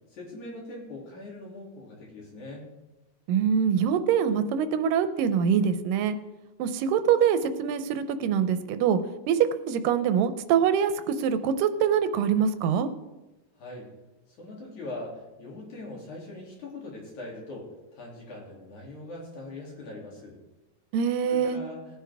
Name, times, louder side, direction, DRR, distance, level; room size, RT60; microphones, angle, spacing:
voice 1, 0.1-2.7 13.6-13.9 14.3-20.4 21.3-21.8, left 2 dB, 60° left, -3 dB, 4.0 m, -41 dB
voice 2, 3.3-6.2 6.6-9.0 9.3-12.9 20.9-21.6, right 8 dB, 90° right, 11 dB, 2.4 m, -24 dB
18.0 x 9.6 x 3.4 m, 1.1 s
omnidirectional pair, 3.8 m